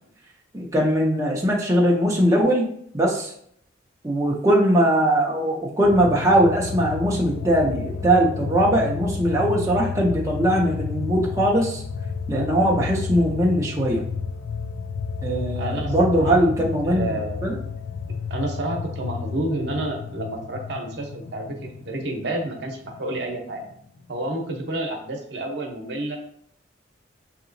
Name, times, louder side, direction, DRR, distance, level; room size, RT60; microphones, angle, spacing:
voice 1, 0.5-2.7 2.9-3.3 4.0-11.8 12.3-14.1 15.2-17.0 17.4-17.5, right 1 dB, 15° right, -3 dB, 0.6 m, -20 dB
sound 1, 5.8-23.4 23.7-23.8, left 5 dB, 80° left, 0.5 m, -31 dB
voice 2, 15.5-16.5 16.8-17.5 17.9-23.6 24.1-26.2, right 1 dB, 60° right, 1 dB, 0.8 m, -30 dB
6.5 x 2.9 x 2.6 m, 0.67 s
head